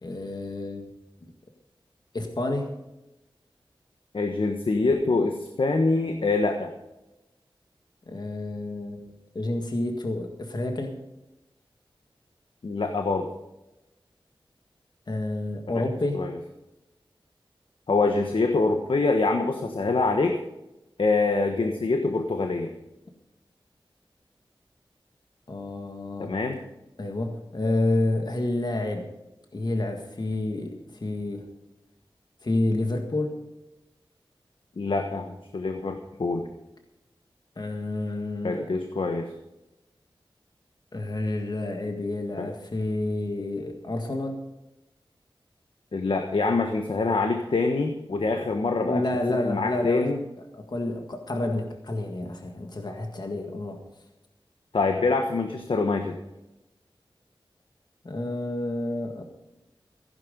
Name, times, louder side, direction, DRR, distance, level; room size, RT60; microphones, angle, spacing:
voice 1, 0.0-0.9 1.2-1.3 2.1-2.7 8.0-9.0 9.3-11.0 15.1-16.3 25.5-26.3 27.0-29.1 29.5-31.5 32.4-33.4 37.5-38.7 40.9-44.4 48.8-50.2 50.5-53.8 58.0-59.2, left 2 dB, 50° left, 4 dB, 1.8 m, -29 dB
voice 2, 4.1-6.7 12.6-13.3 16.1-16.3 17.9-20.4 21.0-22.7 26.2-26.6 34.8-36.4 38.4-39.3 42.4-42.5 45.9-49.0 49.3-50.2 54.7-56.1, left 3 dB, 70° left, 5 dB, 1.3 m, -25 dB
15.5 x 10.5 x 5.3 m, 0.96 s
wide cardioid pair, 90°, 9 cm